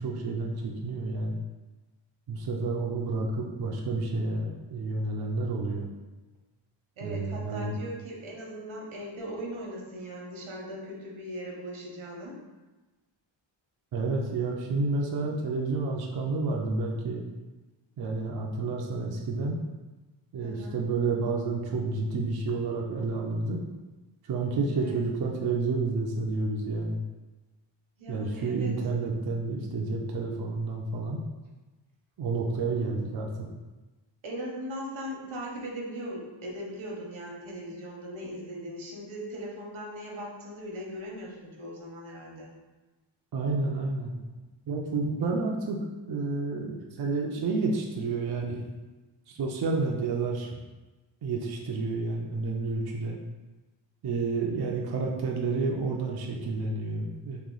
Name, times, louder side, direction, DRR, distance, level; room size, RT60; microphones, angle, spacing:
voice 1, 0.0-1.4 2.3-5.9 7.0-7.8 13.9-17.2 18.0-19.6 20.3-23.6 24.3-27.0 28.1-31.2 32.2-33.5 43.3-44.1 44.7-45.8 46.1-48.7 49.3-50.6 51.2-53.2 54.0-57.4, right 3 dB, 55° right, 0 dB, 0.5 m, -30 dB
voice 2, 7.0-12.4 20.4-20.8 24.8-25.0 28.0-28.7 34.2-42.5, equal, 90° right, -1 dB, 1.0 m, -39 dB
3.1 x 2.9 x 3.8 m, 1.2 s
wide cardioid pair, 165°, 47 cm